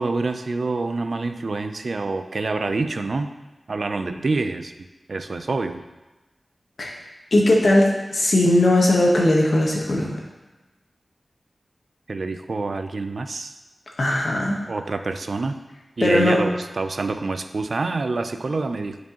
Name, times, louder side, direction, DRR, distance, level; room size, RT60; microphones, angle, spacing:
voice 1, 0.0-3.3 3.7-5.8 12.1-13.6 14.7-15.6 16.0-19.0, right 3 dB, 70° right, 8 dB, 0.4 m, -26 dB
voice 2, 7.3-10.1 14.0-14.6 16.0-16.4, left 1 dB, 70° left, -1 dB, 1.2 m, -18 dB
8.1 x 4.6 x 2.9 m, 1.1 s
wide cardioid pair, 55°, 0 cm